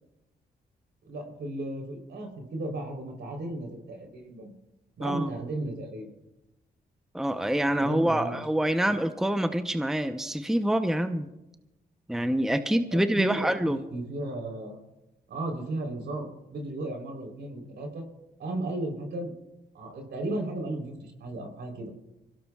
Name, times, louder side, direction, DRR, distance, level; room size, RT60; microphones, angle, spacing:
voice 1, 1.0-4.5 5.0-6.1 7.8-8.3 8.9-9.0 12.9-14.8 15.3-18.0 18.4-19.3 19.7-21.9, right 2 dB, 75° right, 2 dB, 3.7 m, -35 dB
voice 2, 5.0-5.3 7.1-11.3 12.1-13.8, right 1 dB, ahead, 8 dB, 0.8 m, -26 dB
24.0 x 17.0 x 2.4 m, 0.95 s
cardioid pair, 70°, 18 cm